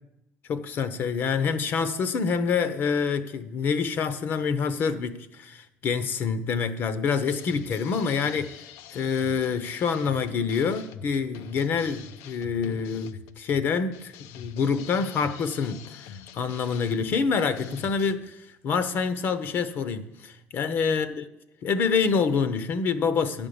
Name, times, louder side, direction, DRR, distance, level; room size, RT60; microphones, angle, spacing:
voice 1, 0.5-8.6 8.9-21.2 21.6-23.5, left 5 dB, 45° left, 0.7 m, -27 dB
sound 1, 7.0-18.1, left 8 dB, 90° left, 0.5 m, -45 dB
11.0 x 5.2 x 8.6 m
cardioid pair, 145°, 5 cm